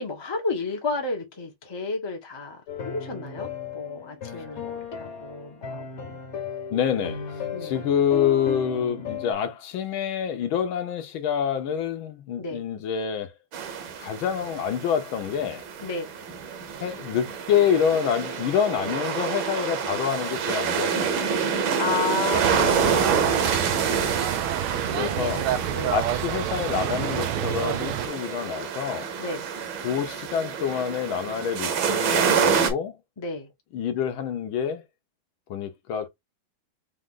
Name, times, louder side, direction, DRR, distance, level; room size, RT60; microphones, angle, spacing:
voice 1, 0.0-6.2 7.5-7.9 12.4-12.6 15.8-16.1 21.8-23.5 24.8-26.0 29.2-29.5 33.2-33.5, left 3 dB, 25° left, 0.6 m, -32 dB
sound 1, 2.7-9.3, left 5 dB, 40° left, 1.1 m, -35 dB
voice 2, 6.7-13.3 14.0-15.7 16.8-21.2 24.1-24.4 24.9-25.5 25.9-29.1 29.8-33.0 33.7-34.8 35.5-36.1, left 8 dB, 75° left, 1.6 m, -27 dB
sound 2, 13.5-32.7, right 6 dB, 70° right, 1.7 m, -28 dB
sound 3, 22.3-28.1, right 11 dB, 90° right, 1.5 m, -28 dB
4.7 x 2.5 x 3.6 m
omnidirectional pair, 2.3 m